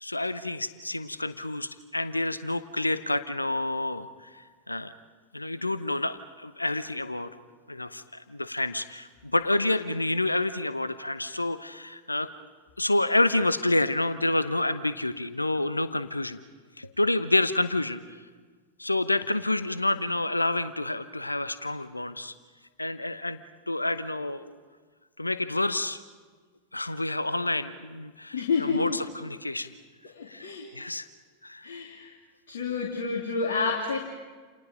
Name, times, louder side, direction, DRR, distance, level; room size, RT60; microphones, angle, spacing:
voice 1, 0.0-4.9 5.3-7.3 7.7-12.3 12.8-16.4 16.8-18.0 18.8-22.3 22.8-23.4 23.7-24.5 25.2-26.0 26.7-29.7 30.3-30.5 30.7-31.1 31.4-31.7, left 2 dB, 85° left, 13 dB, 1.0 m, -28 dB
voice 2, 28.3-29.0 30.1-30.7 31.6-32.1 32.5-34.0, left 4 dB, 65° left, -1 dB, 3.0 m, -29 dB
29.5 x 29.0 x 5.2 m, 1.5 s
figure-of-eight pair, 90°, 0 cm